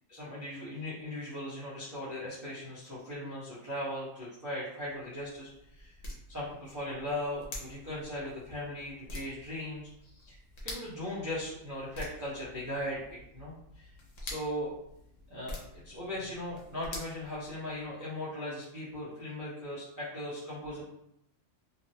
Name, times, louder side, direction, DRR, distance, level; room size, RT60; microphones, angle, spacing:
voice 1, 0.1-5.9 6.3-10.4 10.6-13.9 14.2-14.7 15.3-15.6 15.8-20.8, left 1 dB, 15° right, -11 dB, 0.9 m, -38 dB
sound 1, 4.9-18.0, left 1 dB, 75° left, 1.2 m, -47 dB
3.0 x 2.5 x 2.7 m, 0.79 s
omnidirectional pair, 1.3 m